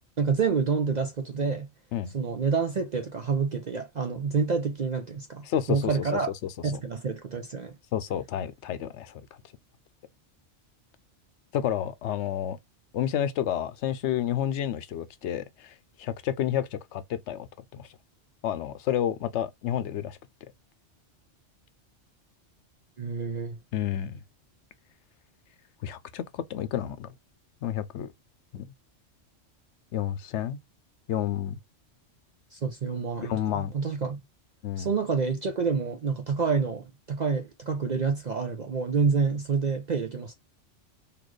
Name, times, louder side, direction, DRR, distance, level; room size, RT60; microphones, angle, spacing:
voice 1, 0.2-1.7 2.1-6.3 6.6-7.8 23.0-23.6 32.5-34.2 34.8-40.3, right 5 dB, 50° right, 0.6 m, -28 dB
voice 2, 5.4-5.9 6.4-6.5 7.9-9.2 11.5-12.6 12.9-17.5 17.7-17.9 18.4-20.2 23.7-24.2 25.8-27.1 27.6-28.1 28.5-28.7 29.9-30.6 31.1-31.6 33.2-33.7 34.6-34.9, left 10 dB, 75° left, 0.9 m, -30 dB
4.2 x 2.9 x 3.1 m
omnidirectional pair, 1.2 m